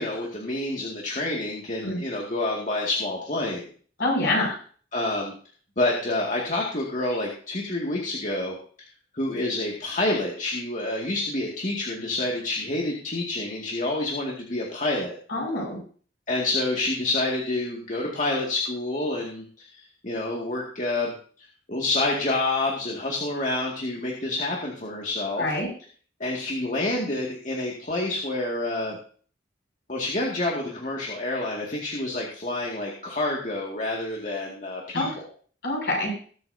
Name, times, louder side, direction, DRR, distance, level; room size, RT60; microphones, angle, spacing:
voice 1, 0.0-3.6 4.9-5.3 5.8-8.9 9.1-15.2 16.3-25.5 26.2-29.0 29.9-35.3, left 2 dB, 45° left, -2 dB, 2.2 m, -28 dB
voice 2, 4.0-4.6 15.3-15.8 25.4-25.7 34.9-35.1 35.6-36.1, left 2 dB, 65° left, -2 dB, 6.8 m, -25 dB
20.5 x 8.3 x 2.8 m, 0.43 s
head